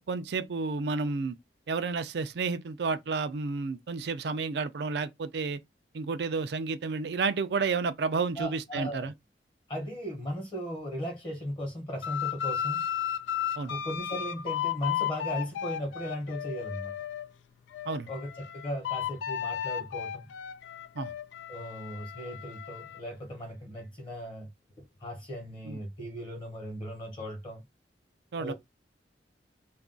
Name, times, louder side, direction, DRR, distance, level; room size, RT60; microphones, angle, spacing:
voice 1, 0.0-1.4 1.7-5.6 5.9-9.1 13.6-13.7 17.9-18.1 21.0-21.1 25.7-25.8 28.3-28.5, right 4 dB, 65° right, 0.4 m, -31 dB
voice 2, 8.4-9.1 9.7-12.8 13.7-16.9 18.1-20.3 21.5-24.5 25.0-27.6 28.4-28.5, equal, 30° left, 0.9 m, -37 dB
sound 1, 12.0-17.3 17.7-23.0, left 10 dB, 85° left, 0.3 m, -34 dB
2.4 x 2.3 x 3.7 m
head